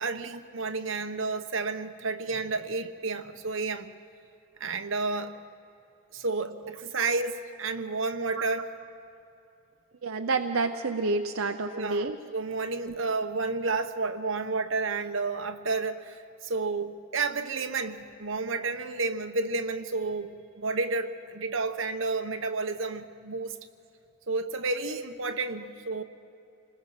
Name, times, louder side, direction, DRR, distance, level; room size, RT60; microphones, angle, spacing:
voice 1, 0.0-3.9 4.6-5.4 6.1-8.7 11.7-23.6 24.3-26.0, right 3 dB, 75° right, 7 dB, 1.1 m, -31 dB
voice 2, 10.0-12.2 12.9-13.0, right 3 dB, 90° right, 6 dB, 0.7 m, -29 dB
27.5 x 20.0 x 5.8 m, 2.8 s
head